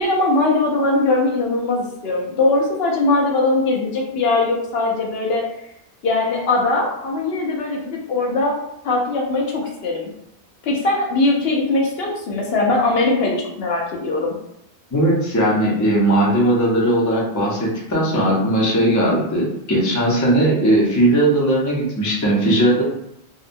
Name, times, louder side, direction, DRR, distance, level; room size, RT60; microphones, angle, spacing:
voice 1, 0.0-5.4 6.0-8.6 8.8-10.1 10.6-14.3, left 2 dB, 70° left, -1 dB, 0.8 m, -20 dB
voice 2, 14.9-22.8, right 1 dB, 25° left, -4 dB, 0.4 m, -18 dB
2.7 x 2.1 x 2.5 m, 0.79 s
omnidirectional pair, 1.1 m